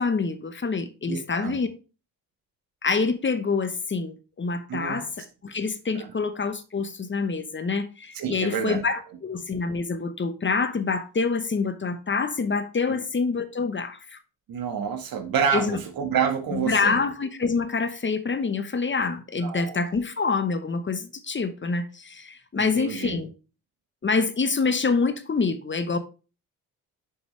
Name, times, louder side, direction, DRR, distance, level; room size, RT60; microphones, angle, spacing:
voice 1, 0.0-1.7 2.8-14.2 15.5-15.8 16.5-23.3 24.0-26.0, left 4 dB, 30° left, 1.0 m, -26 dB
voice 2, 1.1-1.6 4.7-5.0 5.9-6.1 8.1-8.8 12.9-13.0 14.5-17.0 19.4-19.8 22.6-23.2, right 7 dB, 65° right, 1.8 m, -28 dB
6.7 x 6.6 x 3.2 m
supercardioid pair, 70°, 37 cm